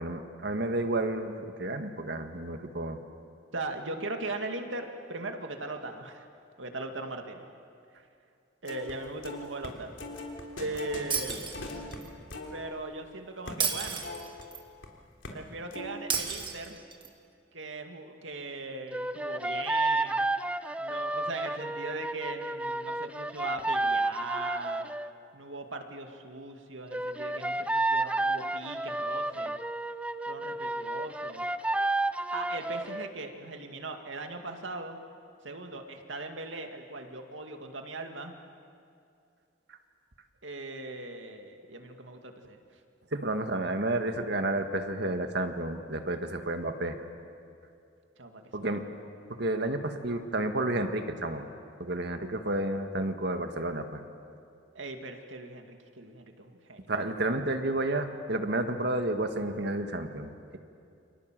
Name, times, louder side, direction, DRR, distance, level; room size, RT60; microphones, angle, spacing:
voice 1, 0.0-3.0 43.1-47.0 48.5-48.8 49.4-51.5 51.8-54.0 56.9-60.6, right 2 dB, 60° right, 7 dB, 1.8 m, -31 dB
voice 2, 3.5-6.3 6.6-7.4 8.6-10.0 10.6-11.5 12.5-14.1 15.3-16.8 17.5-20.3 20.8-24.9 25.3-29.6 30.3-31.5 32.3-35.0 35.4-38.3 40.4-42.6 48.2-48.5 54.7-56.9, right 2 dB, 85° right, 4 dB, 2.3 m, -39 dB
sound 1, 8.7-8.9 9.2-14.9 15.2-15.4 15.7-16.5, left 2 dB, 80° left, 3.4 m, -42 dB
Shatter, 11.1-12.1 13.6-14.6 16.1-17.1, right 6 dB, 25° right, 2.0 m, -32 dB
sound 2, 18.9-25.1 26.9-33.1, right 2 dB, 5° right, 0.5 m, -31 dB
29.5 x 24.5 x 7.7 m, 2.5 s
head